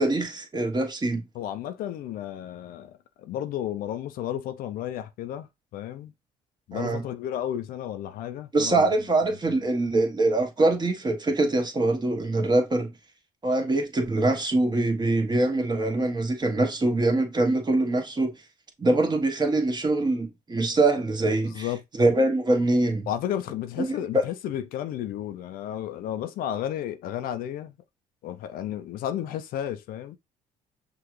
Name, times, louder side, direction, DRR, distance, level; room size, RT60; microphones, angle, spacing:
voice 1, 0.0-1.2 6.7-7.0 8.5-12.9 13.4-18.3 18.8-21.7 22.0-23.1 23.8-24.2, right 2 dB, 25° right, 1.3 m, -24 dB
voice 2, 1.3-6.1 6.7-8.9 9.5-9.6 21.5-21.8 23.1-27.7 28.2-30.2, left 11 dB, 70° left, 0.5 m, -33 dB
5.9 x 2.5 x 3.1 m
supercardioid pair, 65°, 16 cm